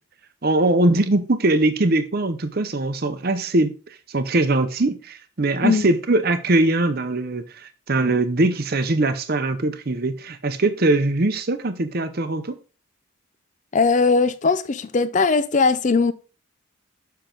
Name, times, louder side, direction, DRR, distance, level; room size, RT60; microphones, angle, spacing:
voice 1, 0.4-12.5, right 2 dB, 45° right, 0.7 m, -21 dB
voice 2, 13.7-16.1, left 4 dB, 35° left, 0.4 m, -19 dB
7.0 x 5.7 x 3.8 m
head